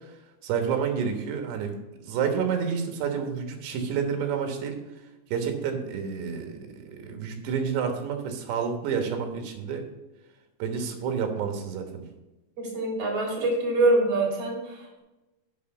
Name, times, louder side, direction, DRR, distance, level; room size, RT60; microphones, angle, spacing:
voice 1, 0.4-1.8 2.0-4.8 5.3-9.9 10.6-12.0, right 6 dB, 75° right, 4 dB, 3.4 m, -29 dB
voice 2, 12.6-15.0, right 2 dB, 35° right, -3 dB, 4.3 m, -25 dB
8.4 x 6.2 x 7.2 m, 1.0 s
omnidirectional pair, 5.3 m